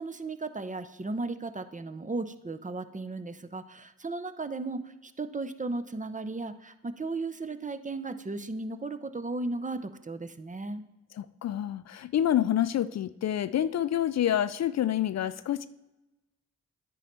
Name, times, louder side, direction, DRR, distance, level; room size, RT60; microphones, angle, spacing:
voice 1, 0.0-10.8, right 3 dB, 25° right, 10 dB, 0.7 m, -35 dB
voice 2, 11.2-15.7, left 11 dB, 55° left, 15 dB, 0.4 m, -27 dB
9.8 x 5.3 x 4.5 m, 1.0 s
supercardioid pair, 50°, 31 cm